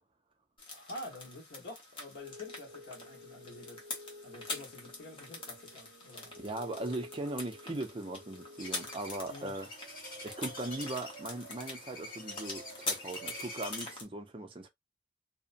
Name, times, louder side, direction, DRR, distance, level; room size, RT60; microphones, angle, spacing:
sound 1, 0.6-14.0, left 3 dB, 30° left, 0.9 m, -44 dB
voice 1, 0.7-3.9 4.2-6.3 9.2-9.5, left 2 dB, 70° left, 1.2 m, -47 dB
sound 2, 2.2-13.5, left 1 dB, 85° right, 0.5 m, -53 dB
voice 2, 6.4-9.7 10.2-14.7, right 2 dB, 30° right, 0.5 m, -39 dB
sound 3, 8.6-14.0, left 1 dB, 50° left, 1.8 m, -46 dB
2.8 x 2.1 x 2.6 m
head